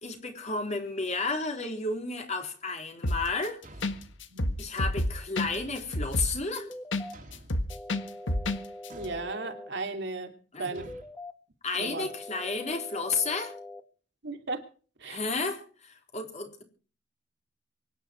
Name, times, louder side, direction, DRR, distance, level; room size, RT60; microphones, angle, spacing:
voice 1, 0.0-3.6 4.6-6.7 10.5-10.7 11.6-13.5 15.1-16.6, left 3 dB, 35° left, 4.0 m, -32 dB
sound 1, 3.0-3.5 3.8-3.9 4.2-7.0 7.3-8.6 8.8-8.9, left 1 dB, 75° left, 1.7 m, -29 dB
Thump thud, 3.6-4.3 5.4-5.9 7.1-7.7 8.9-9.3 10.8-11.1, right 1 dB, 45° right, 2.9 m, -48 dB
sound 2, 6.5-7.1 7.7-9.7 10.7-11.3 11.8-13.8, left 1 dB, 15° left, 2.3 m, -43 dB
voice 2, 9.0-10.3 10.6-10.9 11.7-12.1 14.2-14.7 15.0-15.2, right 3 dB, 65° right, 2.8 m, -35 dB
24.0 x 10.5 x 4.6 m
head